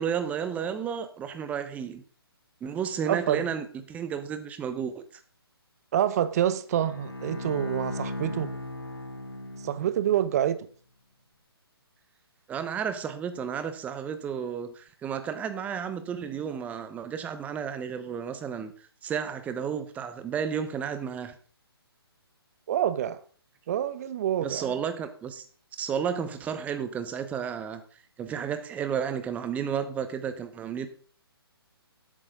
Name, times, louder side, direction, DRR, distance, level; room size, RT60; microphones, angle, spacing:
voice 1, 0.0-2.0 2.6-5.0 12.5-18.7 19.0-21.4 24.4-25.4 25.8-27.8 28.2-30.9, right 7 dB, 10° right, 0.9 m, -32 dB
voice 2, 3.1-3.4 5.9-8.5 9.6-10.6 22.7-23.2 23.7-24.8, right 10 dB, 40° right, 0.9 m, -27 dB
Bowed string instrument, 6.7-10.2, left 1 dB, 65° left, 3.3 m, -37 dB
12.0 x 8.6 x 3.7 m
figure-of-eight pair, 140°, 13 cm